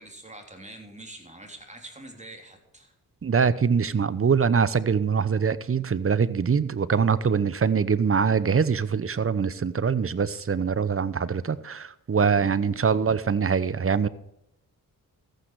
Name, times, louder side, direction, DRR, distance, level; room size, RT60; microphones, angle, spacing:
voice 1, 0.0-2.9, right 2 dB, 20° right, 3 dB, 3.3 m, -45 dB
voice 2, 3.2-14.1, right 6 dB, 35° right, 16 dB, 0.9 m, -23 dB
14.0 x 9.0 x 4.7 m, 0.79 s
cardioid pair, 60°, 37 cm